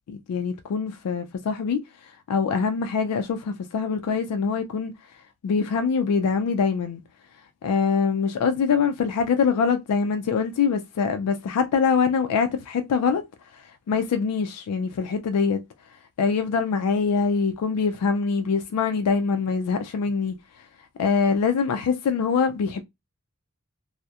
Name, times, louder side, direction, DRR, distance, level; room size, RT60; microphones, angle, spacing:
voice 1, 0.1-4.9 5.4-7.0 7.6-13.2 13.5-15.6 16.2-20.4 21.0-22.8, left 5 dB, 80° left, 0.3 m, -24 dB
2.2 x 2.0 x 2.7 m
head